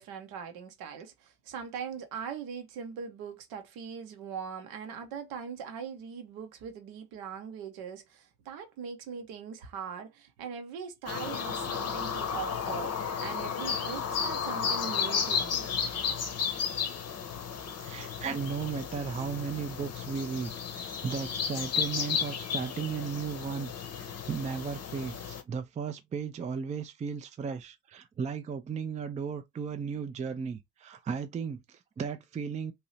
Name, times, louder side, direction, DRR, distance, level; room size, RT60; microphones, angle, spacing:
voice 1, 0.0-15.7, right 7 dB, 60° right, 0.8 m, -41 dB
sound 1, 11.1-25.4, left 7 dB, 40° left, 0.8 m, -33 dB
voice 2, 16.0-16.5 17.8-32.7, right 6 dB, 20° right, 0.4 m, -36 dB
2.8 x 2.7 x 2.9 m
figure-of-eight pair, 40°, 41 cm